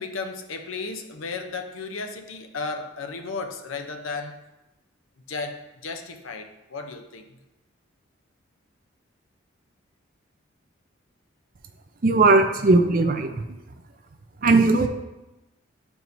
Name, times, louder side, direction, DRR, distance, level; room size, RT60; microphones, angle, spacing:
voice 1, 0.0-4.4 5.3-7.4, left 4 dB, 90° left, 6 dB, 0.7 m, -34 dB
voice 2, 12.0-13.6 14.4-14.9, right 3 dB, 45° right, 7 dB, 0.5 m, -18 dB
10.5 x 4.6 x 2.7 m, 1.0 s
head